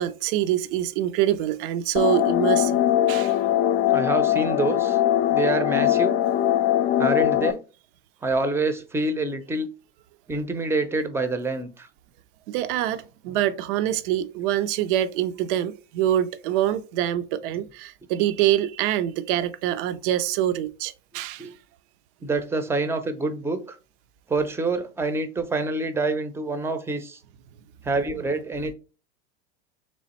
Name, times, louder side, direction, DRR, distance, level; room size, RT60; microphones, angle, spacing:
voice 1, 0.0-3.4 12.5-21.5, right 12 dB, 65° right, 0.5 m, -25 dB
sound 1, 2.0-7.5, left 12 dB, 40° left, 0.4 m, -21 dB
voice 2, 3.9-5.0 5.3-6.2 7.0-7.6 8.2-9.7 10.3-11.9 21.4-21.5 22.2-23.8 24.3-27.2 27.8-28.7, right 3 dB, 10° right, 0.6 m, -26 dB
3.4 x 3.1 x 4.2 m
supercardioid pair, 110°, 29 cm